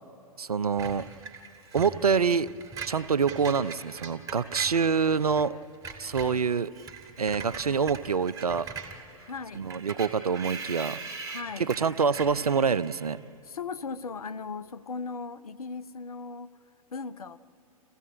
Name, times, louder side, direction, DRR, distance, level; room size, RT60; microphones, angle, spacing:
voice 1, 0.4-1.1 1.7-2.5 2.9-5.5 6.0-6.7 7.2-8.7 9.5-11.0 11.6-13.2, right 6 dB, 85° right, 16 dB, 0.6 m, -26 dB
Screech, 0.8-5.5 5.7-13.2, right 5 dB, 20° right, 2.6 m, -41 dB
voice 2, 9.2-9.7 11.2-11.7 13.4-16.5 16.9-17.4, left 4 dB, 75° left, 14 dB, 0.8 m, -38 dB
28.0 x 15.5 x 8.7 m, 2.8 s
figure-of-eight pair, 105°, 19 cm